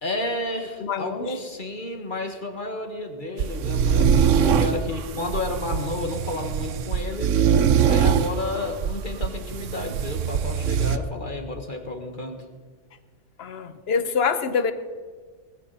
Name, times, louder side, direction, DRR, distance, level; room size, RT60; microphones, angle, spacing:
voice 1, 0.0-7.5 7.9-12.5, left 2 dB, 40° left, 4 dB, 1.9 m, -31 dB
voice 2, 0.8-1.4 13.4-14.7, left 6 dB, 60° left, 10 dB, 1.2 m, -25 dB
sound 1, 3.4-11.0, right 7 dB, 85° right, 1.1 m, -22 dB
19.5 x 15.0 x 4.3 m, 1.5 s
omnidirectional pair, 1.2 m